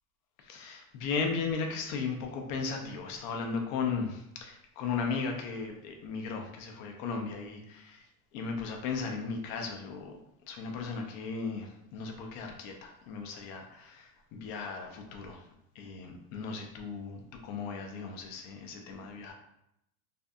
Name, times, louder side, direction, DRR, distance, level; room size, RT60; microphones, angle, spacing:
voice 1, 0.4-10.2 10.5-15.5 15.7-19.3, left 5 dB, 65° left, 3 dB, 0.6 m, -36 dB
2.6 x 2.5 x 2.2 m, 0.79 s
supercardioid pair, 125°, 43 cm